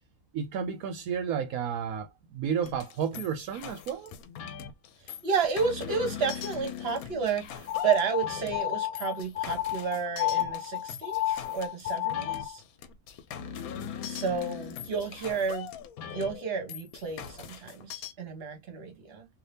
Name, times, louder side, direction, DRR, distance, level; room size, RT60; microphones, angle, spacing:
voice 1, 0.3-4.1, right 7 dB, 80° right, 1.0 m, -32 dB
sound 1, 2.6-18.1, left 8 dB, 80° left, 1.1 m, -41 dB
voice 2, 5.2-12.6 14.0-15.7 16.1-19.3, right 5 dB, 45° right, 1.2 m, -31 dB
sound 2, 7.7-12.6, left 13 dB, 50° left, 0.8 m, -31 dB
2.7 x 2.6 x 3.3 m
omnidirectional pair, 1.5 m